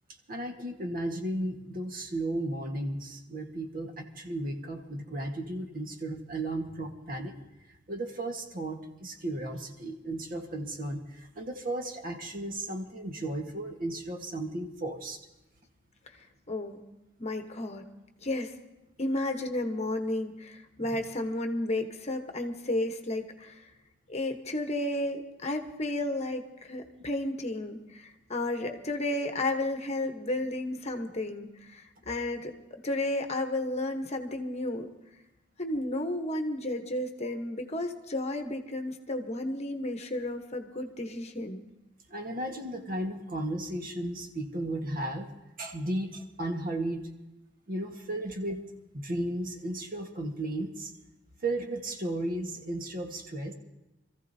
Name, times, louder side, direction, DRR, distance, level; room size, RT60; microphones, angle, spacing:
voice 1, 0.3-7.4 7.9-15.2 20.8-21.0 42.1-45.3 45.6-47.1 47.7-48.6 48.9-50.9 51.4-53.5, right 1 dB, 50° right, 4 dB, 1.4 m, -34 dB
voice 2, 16.5-16.8 17.2-17.8 18.2-18.5 19.0-23.7 24.1-34.9 35.6-41.6, left 1 dB, 35° left, 6 dB, 1.0 m, -32 dB
26.0 x 14.5 x 2.7 m, 0.99 s
head